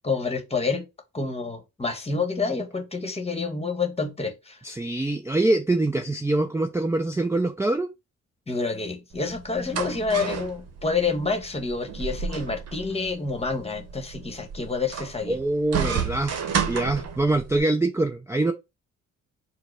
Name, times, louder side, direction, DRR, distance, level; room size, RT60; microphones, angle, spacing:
voice 1, 0.0-0.8 1.1-4.6 8.5-15.4, left 4 dB, 20° left, 1.2 m, -28 dB
voice 2, 4.6-7.9 15.3-16.4 16.7-18.5, right 2 dB, 10° right, 0.5 m, -24 dB
sound 1, 9.1-17.6, right 7 dB, 55° right, 0.9 m, -32 dB
4.6 x 2.1 x 4.6 m
cardioid pair, 90°, 30 cm